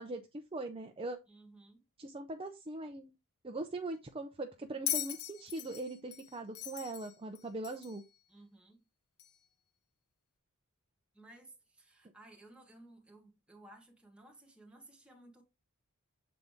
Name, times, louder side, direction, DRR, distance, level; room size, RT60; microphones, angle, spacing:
voice 1, 0.0-1.2 2.0-3.1 3.4-8.0, right 2 dB, 25° right, 0.6 m, -41 dB
voice 2, 1.3-1.8 8.3-8.9 11.1-15.4, right 2 dB, 5° right, 1.5 m, -57 dB
Bell, 4.9-8.0 9.2-9.3, left 11 dB, 80° left, 0.9 m, -39 dB
7.6 x 4.0 x 3.5 m
head